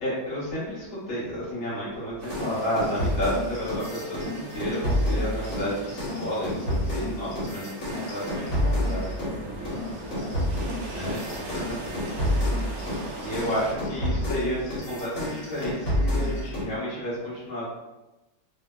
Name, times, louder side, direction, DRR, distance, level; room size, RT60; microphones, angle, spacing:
voice 1, 0.0-9.2 9.5-9.7 10.9-12.2 12.5-12.7 13.2-17.7, equal, 75° left, -9 dB, 2.3 m, -31 dB
sound 1, 2.2-13.7, right 3 dB, 70° right, 1.0 m, -42 dB
sound 2, 2.3-9.4 9.6-16.7, equal, 40° left, 1.4 m, -29 dB
sound 3, 8.4-14.3, left 1 dB, 20° left, 0.3 m, -44 dB
voice 2, 9.2-11.4 11.8-12.3, right 1 dB, 35° right, -10 dB, 0.6 m, -43 dB
5.4 x 2.1 x 2.2 m, 1.0 s
omnidirectional pair, 2.2 m